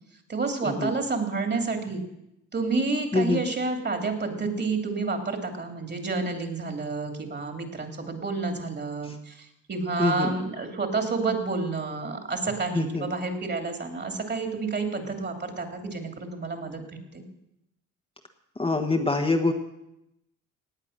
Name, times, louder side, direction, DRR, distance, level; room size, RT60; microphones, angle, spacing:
voice 1, 0.3-2.0 2.5-16.8 17.1-17.2, right 3 dB, 35° right, 5 dB, 2.7 m, -29 dB
voice 2, 3.1-3.4 9.0-9.1 10.0-10.3 12.7-13.1 18.6-19.5, left 3 dB, 20° left, 3 dB, 1.3 m, -25 dB
17.5 x 8.7 x 6.6 m, 0.84 s
cardioid pair, 90°, 30 cm